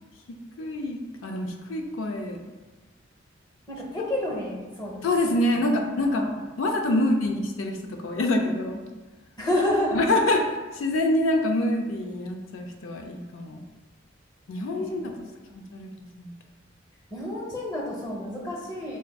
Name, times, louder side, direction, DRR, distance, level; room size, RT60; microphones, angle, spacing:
voice 1, 0.6-2.4 5.0-6.3 6.6-8.8 9.9-10.5 10.7-13.6 14.5-15.1 15.7-15.9 16.2-16.3, left 1 dB, 85° left, 3 dB, 0.4 m, -26 dB
voice 2, 3.7-5.0 5.3-5.4 5.7-6.4 6.9-7.1 9.4-10.0 14.8-15.2 17.1-19.0, left 1 dB, 20° left, -3 dB, 0.7 m, -30 dB
6.0 x 2.5 x 2.2 m, 1.2 s
head